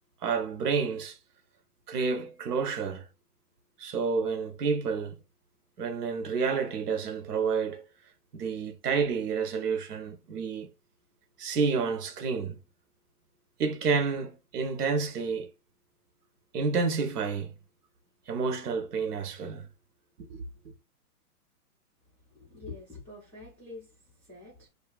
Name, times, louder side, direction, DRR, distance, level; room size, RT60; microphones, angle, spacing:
voice 1, 0.2-1.2 1.9-3.1 3.8-5.2 5.8-7.8 8.3-10.7 11.4-12.6 13.6-15.5 16.5-17.5 18.3-19.7 20.3-20.4, right 5 dB, 85° right, 0.8 m, -29 dB
voice 2, 22.3-24.7, left 3 dB, 5° left, 0.4 m, -46 dB
2.7 x 2.3 x 2.3 m
hypercardioid pair, 140°, 45 cm